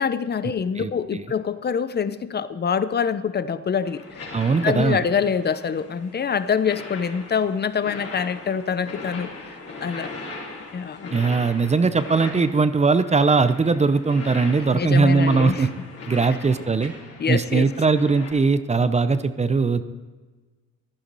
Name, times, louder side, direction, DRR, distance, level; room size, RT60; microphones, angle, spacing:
voice 1, 0.0-4.3 4.6-10.1 10.7-11.1 14.7-15.7 17.2-17.7, left 6 dB, 35° left, 14 dB, 0.7 m, -25 dB
voice 2, 0.8-1.2 4.3-5.0 11.1-15.7 16.1-16.9 17.3-19.8, right 4 dB, 20° right, 12 dB, 0.6 m, -20 dB
sound 1, 3.8-18.3, left 3 dB, 50° left, 3.5 m, -39 dB
14.5 x 11.5 x 4.1 m, 1.4 s
cardioid pair, 90°, 30 cm